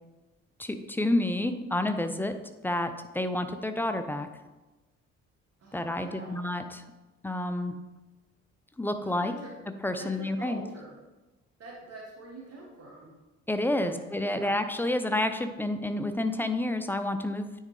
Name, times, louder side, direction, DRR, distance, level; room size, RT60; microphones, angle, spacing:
voice 1, 0.6-2.3 2.6-4.3 5.7-6.8 7.2-7.7 8.8-9.3 9.8-10.6 13.5-17.5, left 1 dB, 5° left, 8 dB, 0.5 m, -29 dB
voice 2, 5.6-6.4 9.0-9.5 10.0-11.0 11.6-13.2 13.8-14.0 14.3-14.6, right 2 dB, 40° right, -2 dB, 1.6 m, -45 dB
9.5 x 3.6 x 3.3 m, 1.1 s
figure-of-eight pair, 45°, 36 cm